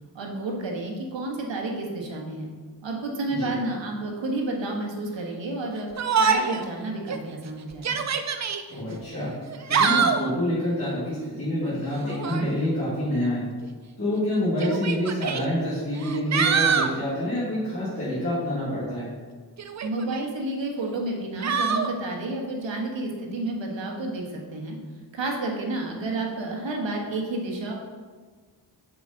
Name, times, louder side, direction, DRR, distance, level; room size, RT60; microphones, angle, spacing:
voice 1, 0.1-2.5 2.8-5.9 6.2-8.0 19.8-24.8 25.1-27.7, right 2 dB, 80° right, 0 dB, 1.4 m, -30 dB
Yell, 6.0-6.7 7.1-7.2 7.7-8.6 9.5-10.3 12.0-12.5 13.6-13.7 14.6-15.4 16.0-16.9 19.6-20.3 21.4-21.9, right 6 dB, 40° right, 0.4 m, -24 dB
voice 2, 8.7-9.3 9.7-13.4 14.0-19.1, left 1 dB, 30° left, -10 dB, 1.9 m, -27 dB
6.9 x 5.2 x 3.9 m, 1.5 s
wide cardioid pair, 135°, 44 cm